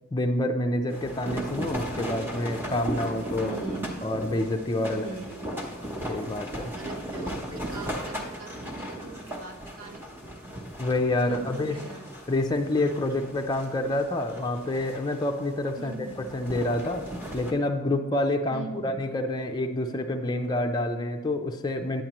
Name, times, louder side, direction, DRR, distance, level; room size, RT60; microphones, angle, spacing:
voice 1, 0.1-3.6 4.0-5.1 5.4-5.5 6.1-6.7 10.8-11.8 12.3-16.0 16.3-17.1 17.3-22.0, left 1 dB, 20° left, 3 dB, 0.4 m, -27 dB
sound 1, 0.9-17.5, right 1 dB, 10° right, 0.9 m, -37 dB
voice 2, 3.4-3.9 4.9-5.4 6.7-10.4 11.3-12.1 15.8-16.3 18.5-19.0, right 4 dB, 65° right, 3 dB, 1.0 m, -41 dB
9.1 x 8.6 x 3.0 m, 1.2 s
head